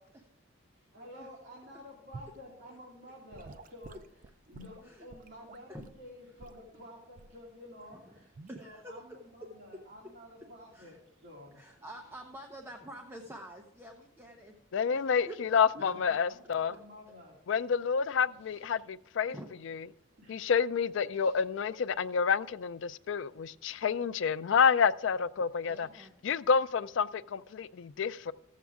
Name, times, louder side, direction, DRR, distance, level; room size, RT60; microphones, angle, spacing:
voice 1, 0.7-4.0 4.5-11.9 15.7-17.4 18.4-18.7 20.2-20.4 21.1-21.4, left 1 dB, 60° right, 2.6 m, -51 dB
Gurgling / Sink (filling or washing) / Liquid, 2.1-2.4 3.3-6.0 6.4-6.7 7.2-7.4 8.3-8.6, right 3 dB, 40° right, 0.4 m, -50 dB
voice 2, 8.5-9.0 10.7-11.0 11.5-14.5 14.9-15.0 15.3-15.9 19.3-19.5 25.6-26.2, equal, 10° right, 0.8 m, -47 dB
voice 3, 14.7-16.7 17.5-19.3 19.6-19.8 20.3-25.9 26.2-28.3, left 6 dB, 70° left, 0.4 m, -29 dB
15.0 x 7.4 x 3.5 m
head